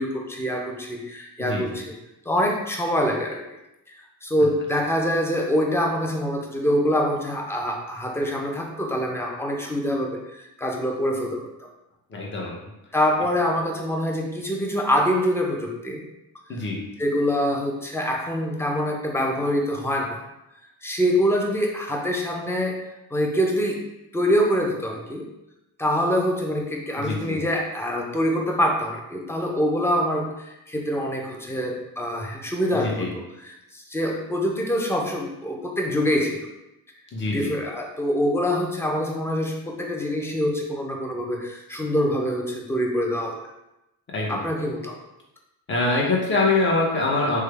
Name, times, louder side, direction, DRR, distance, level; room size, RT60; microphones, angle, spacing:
voice 1, 0.0-1.9 2.3-3.4 3.9-11.7 12.9-16.0 16.5-16.6 17.0-20.2 20.8-22.8 23.1-23.8 24.1-25.3 25.8-36.5 37.3-43.4 44.3-45.0, equal, 5° left, 0 dB, 0.6 m, -25 dB
voice 2, 12.1-12.6 16.5-16.8 27.0-27.4 32.8-33.1 37.1-37.5 44.1-44.4 45.7-47.4, left 3 dB, 30° left, -2 dB, 0.9 m, -24 dB
3.1 x 2.3 x 3.3 m, 0.91 s
supercardioid pair, 80°, 40 cm